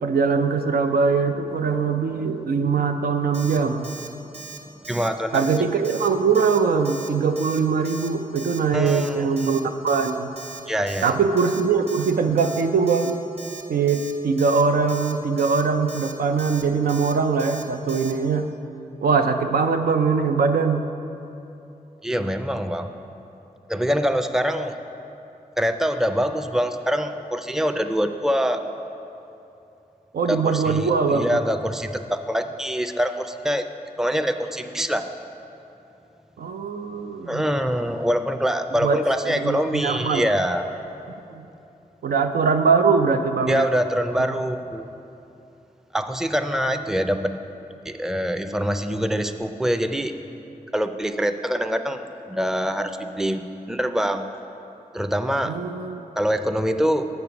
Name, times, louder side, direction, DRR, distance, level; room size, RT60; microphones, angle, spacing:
voice 1, 0.0-3.9 5.3-10.3 11.0-13.2 13.7-18.5 19.0-20.9 30.1-31.4 36.4-37.4 38.8-39.0 39.2-40.3 41.3-41.4 42.0-43.7 55.4-56.0, right 5 dB, 80° right, 6 dB, 0.5 m, -22 dB
Alarm, 3.3-3.6 3.8-4.1 4.3-4.6 4.8-5.1 5.3-5.6 5.8-6.1 6.3-6.6 6.8-7.1 7.4-7.6 7.8-8.1 8.3-8.6 8.9-9.1 9.4-9.6 9.9-10.1 10.4-10.6 10.9-11.1 11.4-11.6 11.9-12.1 12.4-12.6 12.9-13.1 13.4-13.6 13.9-14.1 14.4-14.6 14.9-15.1 15.4-15.6 15.9-16.1 16.4-16.6 16.9-17.1 17.4-17.6 17.9-18.1, right 4 dB, 45° right, 1.1 m, -39 dB
voice 2, 4.9-5.4 8.7-9.3 10.7-11.1 22.0-22.9 23.7-24.7 25.6-28.6 30.3-33.7 34.0-35.0 37.3-40.6 43.5-44.9 45.9-47.4 47.8-50.1 50.7-52.0 52.3-54.3 54.9-55.5 56.2-57.1, equal, 5° right, 8 dB, 0.4 m, -24 dB
6.7 x 6.7 x 5.9 m, 2.8 s
cardioid pair, 45°, 15 cm